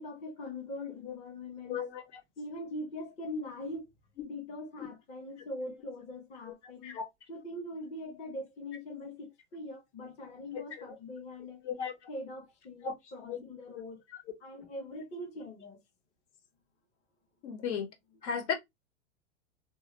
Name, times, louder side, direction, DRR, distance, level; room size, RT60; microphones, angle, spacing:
voice 1, 0.0-1.9 2.4-3.8 4.2-7.0 7.3-11.6 12.1-14.0 14.4-15.8 18.2-18.3, left 1 dB, 20° left, 0.6 m, -42 dB
voice 2, 1.7-2.0 6.8-7.1 11.6-11.9 12.8-12.9 13.3-13.4 14.1-14.2 17.4-17.9 18.2-18.5, left 6 dB, 75° left, 1.1 m, -34 dB
2.3 x 2.3 x 2.9 m
supercardioid pair, 140°, 36 cm